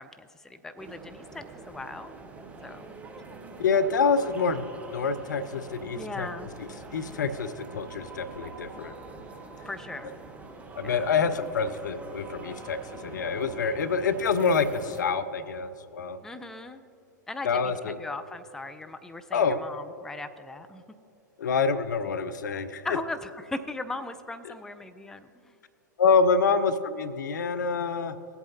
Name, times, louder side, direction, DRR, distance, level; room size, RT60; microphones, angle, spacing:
voice 1, 0.0-2.1 2.6-2.8 5.9-6.5 9.7-10.1 10.8-11.0 16.2-16.8 17.3-20.8 22.8-25.3, left 2 dB, 5° left, 9 dB, 0.4 m, -38 dB
sound 1, 0.8-15.1, right 3 dB, 15° right, 0.8 m, -44 dB
voice 2, 3.6-4.7 4.9-6.3 6.6-8.9 10.8-16.2 17.4-18.0 19.3-19.6 21.4-23.0 24.4-24.5 26.0-28.2, left 5 dB, 70° left, 12 dB, 0.6 m, -26 dB
18.5 x 8.1 x 2.8 m, 2.7 s
figure-of-eight pair, 100°, 10 cm